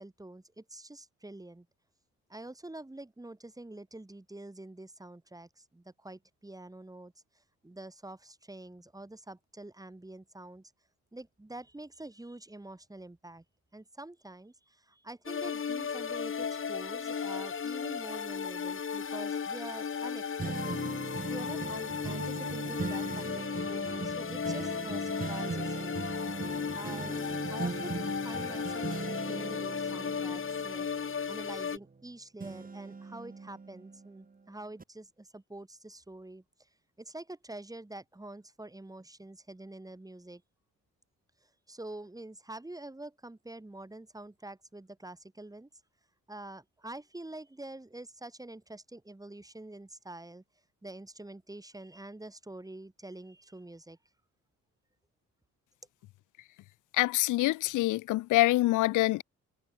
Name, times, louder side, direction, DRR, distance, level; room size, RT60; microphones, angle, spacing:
voice 1, 0.0-1.7 2.3-10.7 11.1-13.4 13.7-20.9 21.3-26.1 26.7-27.2 27.5-30.9 31.3-36.4 37.0-40.4 41.4-45.7 46.3-50.4 50.8-54.0, right 2 dB, 10° right, 5.5 m, -46 dB
sound 1, 15.3-31.8, left 6 dB, 45° left, 5.3 m, -35 dB
sound 2, 20.4-32.0 32.4-34.3 34.8-34.9, right 4 dB, 30° right, 7.9 m, -39 dB
voice 2, 56.9-59.2, left 17 dB, 80° left, 0.7 m, -25 dB
cardioid pair, 90°, 30 cm